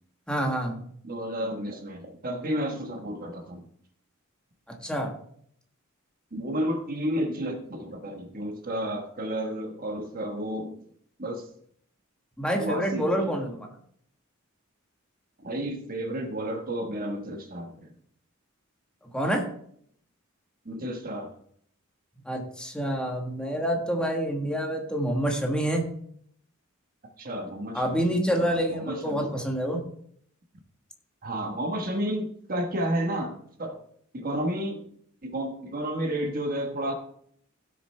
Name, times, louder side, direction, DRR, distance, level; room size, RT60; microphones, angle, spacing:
voice 1, 0.3-0.8 4.7-5.1 12.4-13.7 19.0-19.4 22.2-25.9 27.7-29.8, equal, 5° left, 1 dB, 1.4 m, -27 dB
voice 2, 1.0-3.7 6.3-10.8 11.2-11.5 12.5-13.1 15.4-17.9 20.6-21.3 27.2-29.4 31.2-33.8 34.1-34.8 35.2-36.9, right 1 dB, 40° right, 4 dB, 1.2 m, -31 dB
16.0 x 6.6 x 3.3 m, 0.65 s
head